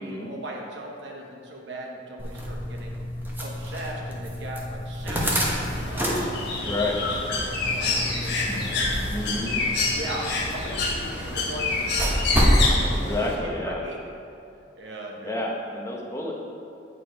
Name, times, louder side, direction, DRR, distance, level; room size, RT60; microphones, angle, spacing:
voice 1, 0.0-3.0 3.4-8.9 9.8-14.0 14.6-15.5, right 1 dB, 70° right, 0 dB, 0.9 m, -39 dB
sound 1, 2.2-12.7, equal, 10° right, 1.0 m, -28 dB
Bird, 5.3-13.4, left 3 dB, 65° left, 1.3 m, -28 dB
voice 2, 6.6-7.0 9.1-9.6 12.9-13.8 15.2-16.3, left 1 dB, 15° left, -1 dB, 0.9 m, -30 dB
8.3 x 4.9 x 4.6 m, 2.5 s
head